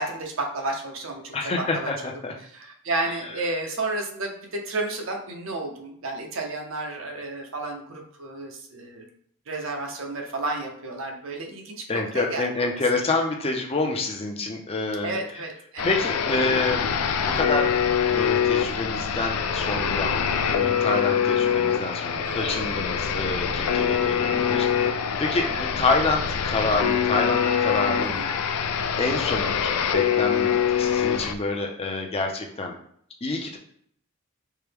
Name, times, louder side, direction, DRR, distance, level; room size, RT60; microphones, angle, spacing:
voice 1, 0.0-1.9 2.4-9.1 9.5-12.8 15.0-15.9 22.2-22.5 28.0-28.3, right 2 dB, 60° right, 2 dB, 0.7 m, -32 dB
voice 2, 1.3-2.3 11.9-15.2 15.8-16.9 17.2-17.7 18.1-20.2 20.5-28.2 28.4-28.6 29.0-30.5 30.8-32.7 33.2-33.6, left 3 dB, 25° left, 2 dB, 0.5 m, -27 dB
sound 1, 15.8-31.3, left 7 dB, 80° left, 0.4 m, -24 dB
4.6 x 2.1 x 3.4 m, 0.65 s
head